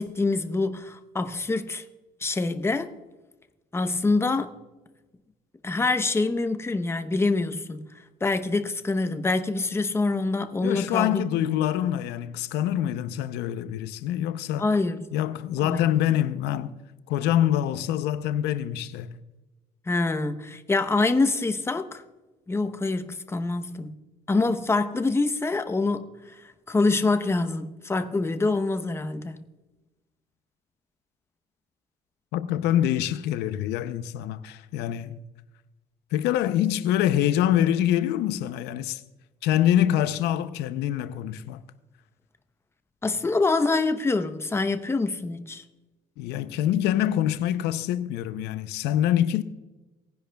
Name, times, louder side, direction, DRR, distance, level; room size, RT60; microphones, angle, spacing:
voice 1, 0.0-1.8 2.2-2.9 3.7-4.5 5.6-7.8 8.2-11.3 11.8-11.9 14.6-15.1 15.6-15.9 19.9-22.0 22.5-23.9 24.3-29.4 43.0-45.6, left 3 dB, 15° left, 0.8 m, -25 dB
voice 2, 10.6-14.7 15.1-16.8 17.1-19.2 32.3-35.2 36.1-39.0 39.4-41.6 46.2-49.4, left 11 dB, 90° left, 0.6 m, -25 dB
19.0 x 10.5 x 2.3 m
cardioid pair, 110°, 17 cm